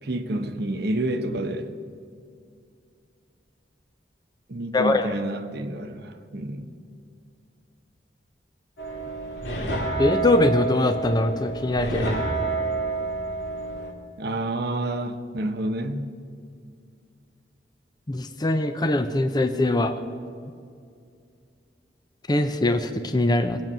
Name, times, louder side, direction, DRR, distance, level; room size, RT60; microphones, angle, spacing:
voice 1, 0.0-1.7 4.5-6.7 14.2-16.0, right 1 dB, 65° right, 6 dB, 0.9 m, -29 dB
voice 2, 4.7-5.1 10.0-12.2 18.1-19.9 22.3-23.6, left 2 dB, 25° left, 8 dB, 0.6 m, -22 dB
sound 1, 8.8-13.9, right 3 dB, 75° left, 2.3 m, -29 dB
21.0 x 8.9 x 6.1 m, 2.3 s
head